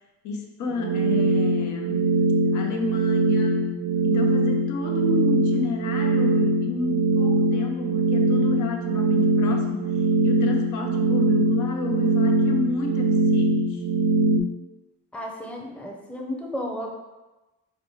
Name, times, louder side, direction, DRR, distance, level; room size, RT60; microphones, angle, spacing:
voice 1, 0.2-3.7 4.0-13.8, left 3 dB, 75° left, 2 dB, 0.7 m, -31 dB
sound 1, 0.7-14.4, right 2 dB, 60° right, 0.5 m, -22 dB
voice 2, 15.1-16.9, equal, 5° left, 0 dB, 0.6 m, -33 dB
4.9 x 2.2 x 3.1 m, 1.1 s
cardioid pair, 90°, 30 cm